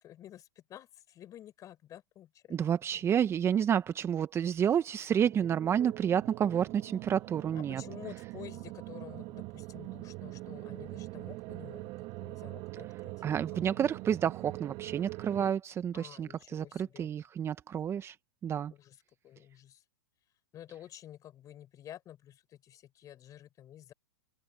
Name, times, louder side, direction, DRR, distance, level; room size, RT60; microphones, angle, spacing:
voice 1, 0.0-2.6 2.9-3.0 7.5-11.9 12.2-13.1 15.9-17.1 18.7-19.0 19.2-19.8 20.5-23.9, left 11 dB, 30° left, 5.2 m, -50 dB
voice 2, 2.5-7.8 13.2-18.2 18.4-18.7, right 8 dB, 20° right, 1.1 m, -30 dB
sound 1, 5.2-15.5, right 22 dB, 40° right, 1.6 m, -43 dB
hypercardioid pair, 115°, 12 cm